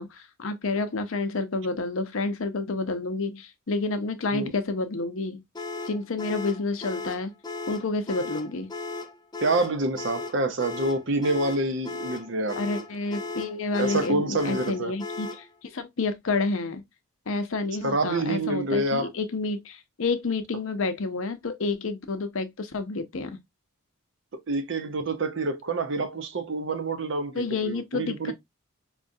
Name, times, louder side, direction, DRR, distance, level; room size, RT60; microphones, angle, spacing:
voice 1, 0.0-5.4 5.9-7.3 7.7-8.7 12.6-16.8 17.3-23.4 27.3-28.3, left 3 dB, 65° left, 0.6 m, -29 dB
sound 1, 5.5-15.5, left 3 dB, 20° left, 0.3 m, -36 dB
voice 2, 9.4-12.8 13.8-14.9 17.8-19.1 24.5-28.3, right 2 dB, 55° right, 0.6 m, -27 dB
5.0 x 2.3 x 2.6 m
head